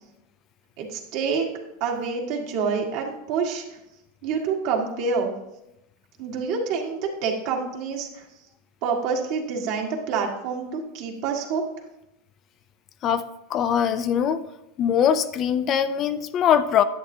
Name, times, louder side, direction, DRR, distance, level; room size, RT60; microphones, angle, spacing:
voice 1, 0.8-1.5 1.8-3.8 4.2-5.3 6.2-8.2 8.8-11.6, right 5 dB, 55° right, 1 dB, 1.6 m, -27 dB
voice 2, 13.0-14.4 14.8-16.8, left 8 dB, 35° left, 12 dB, 0.4 m, -22 dB
10.5 x 8.5 x 2.7 m, 0.89 s
supercardioid pair, 135°, 0 cm